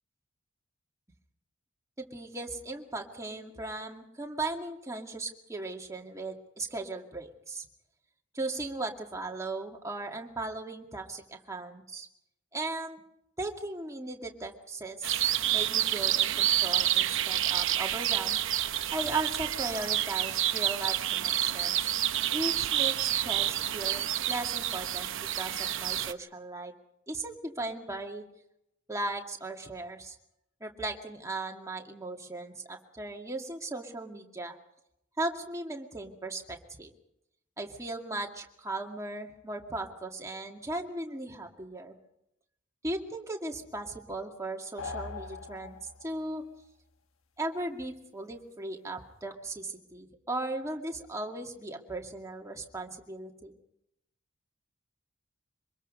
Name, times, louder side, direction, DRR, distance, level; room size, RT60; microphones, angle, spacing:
voice 1, 2.0-7.7 8.3-12.1 12.5-13.0 13.4-15.2 15.5-18.4 18.9-21.9 22.3-26.7 27.1-28.2 28.9-30.2 30.6-34.6 35.2-36.9 37.6-42.0 42.8-46.4 47.4-53.5, right 2 dB, 15° right, 2 dB, 2.2 m, -37 dB
sound 1, 15.0-26.1, right 12 dB, 55° right, 0.8 m, -29 dB
sound 2, 44.8-46.3, left 4 dB, 60° left, 1.5 m, -41 dB
25.0 x 21.5 x 5.4 m, 0.81 s
head